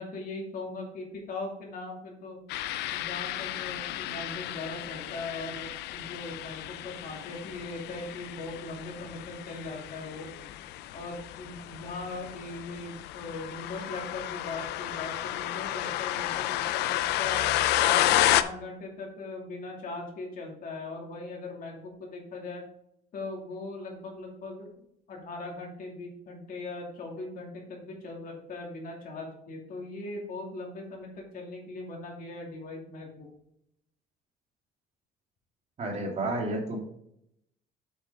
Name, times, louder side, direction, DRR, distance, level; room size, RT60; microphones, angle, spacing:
voice 1, 0.0-2.4 2.9-10.3 10.9-17.4 17.8-22.6 23.1-24.7 25.1-33.3, left 2 dB, 55° left, 0 dB, 2.5 m, -39 dB
sound 1, 2.5-18.4, left 14 dB, 85° left, 0.5 m, -31 dB
voice 2, 35.8-36.8, right 2 dB, 40° right, 1 dB, 2.5 m, -31 dB
8.0 x 6.2 x 3.6 m, 0.76 s
cardioid pair, 110°, 17 cm